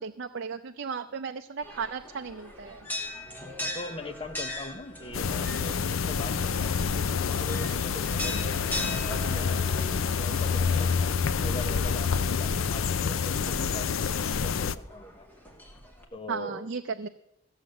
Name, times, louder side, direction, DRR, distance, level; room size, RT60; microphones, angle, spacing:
voice 1, 0.0-2.9 16.3-17.1, right 5 dB, 55° right, 6 dB, 0.5 m, -35 dB
sound 1, 1.6-16.0, left 1 dB, 10° left, 2.1 m, -41 dB
voice 2, 3.6-6.9 7.2-15.3 16.1-16.6, left 1 dB, 25° left, 7 dB, 1.0 m, -42 dB
sound 2, 5.1-14.8, left 6 dB, 70° left, 0.5 m, -27 dB
15.5 x 7.2 x 7.8 m, 0.82 s
head